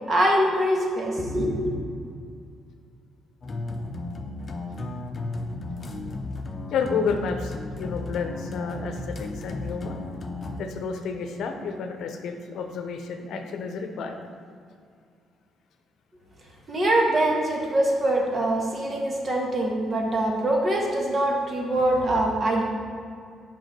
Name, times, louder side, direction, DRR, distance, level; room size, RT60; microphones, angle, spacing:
voice 1, 0.1-1.7 16.7-22.6, right 1 dB, 40° right, -1 dB, 1.6 m, -23 dB
sound 1, 3.4-10.6, left 2 dB, 40° left, 0.7 m, -34 dB
voice 2, 6.7-10.0 10.6-14.2, left 5 dB, 75° left, 5 dB, 0.7 m, -30 dB
7.7 x 5.5 x 4.5 m, 2.3 s
cardioid pair, 90°, 0 cm